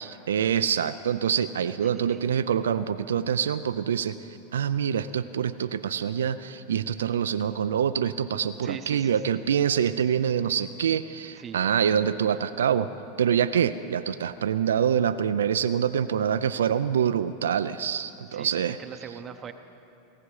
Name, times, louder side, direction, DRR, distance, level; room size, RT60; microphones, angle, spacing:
voice 1, 0.0-4.2 4.5-12.9 13.2-18.8, right 8 dB, 90° right, 11 dB, 0.4 m, -25 dB
voice 2, 1.8-2.2 8.6-9.4 11.3-11.7 18.3-19.5, right 7 dB, 30° right, 8 dB, 0.8 m, -41 dB
18.0 x 15.0 x 4.8 m, 2.8 s
hypercardioid pair, 110°, 0 cm